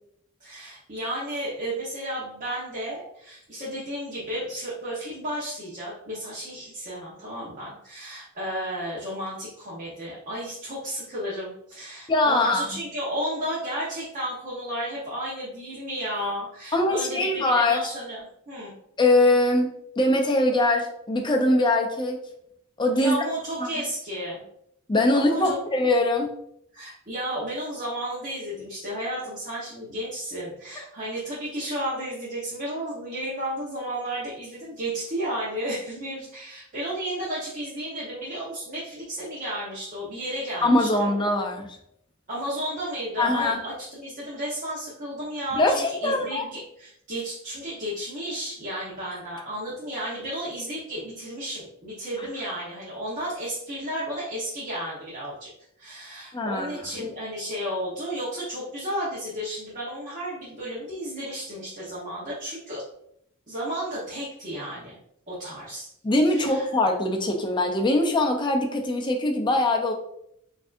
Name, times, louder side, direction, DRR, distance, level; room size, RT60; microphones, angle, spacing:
voice 1, 0.4-18.7 22.9-24.4 25.1-25.6 26.7-41.1 42.3-55.5 55.8-62.8 63.5-65.0 65.3-65.9 66.3-66.7, equal, 40° right, -8 dB, 0.9 m, -33 dB
voice 2, 12.1-12.8 16.7-17.8 19.0-22.2 22.8-23.2 23.6-23.7 24.9-26.3 40.6-41.7 43.2-43.6 45.5-46.4 56.3-56.8 66.0-69.9, left 2 dB, 20° left, 2 dB, 0.5 m, -22 dB
4.6 x 2.7 x 2.5 m, 0.74 s
head